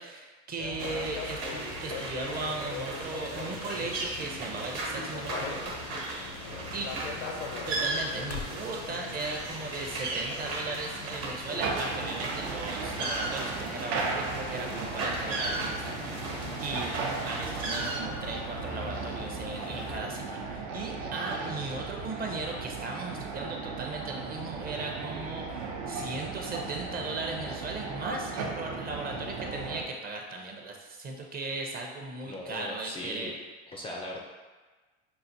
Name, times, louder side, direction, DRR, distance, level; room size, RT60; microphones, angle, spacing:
voice 1, 0.0-5.7 6.7-7.2 7.7-16.9 17.2-33.3, right 3 dB, 30° right, 1 dB, 0.6 m, -37 dB
sound 1, 0.6-20.0, left 4 dB, 90° left, 0.6 m, -42 dB
sound 2, 0.8-18.0, right 2 dB, 50° right, 1.2 m, -36 dB
sound 3, 11.6-29.8, right 4 dB, 75° right, 0.7 m, -36 dB
voice 2, 32.2-33.3 33.7-34.2, left 1 dB, 20° left, -2 dB, 0.3 m, -39 dB
5.6 x 2.5 x 2.6 m, 1.3 s
supercardioid pair, 115°, 31 cm